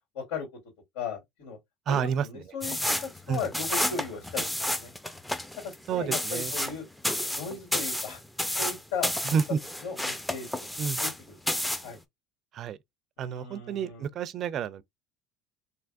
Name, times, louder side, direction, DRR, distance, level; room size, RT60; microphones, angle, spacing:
voice 1, 0.1-0.5 0.9-1.6 1.9-2.8 3.3-4.9 5.6-6.8 7.3-8.2 8.6-9.1 9.8-10.5 10.7-11.4 11.8-12.0 13.2-14.0, left 5 dB, 75° left, 2.3 m, -37 dB
voice 2, 1.9-2.4 3.3-3.4 5.9-6.5 9.2-9.6 10.8-11.0 12.5-12.8 13.2-14.8, right 7 dB, 45° right, 0.4 m, -30 dB
sound 1, 2.6-11.2 11.5-11.9, left 1 dB, 5° left, 0.5 m, -31 dB
3.3 x 2.8 x 2.5 m
supercardioid pair, 95°, 0 cm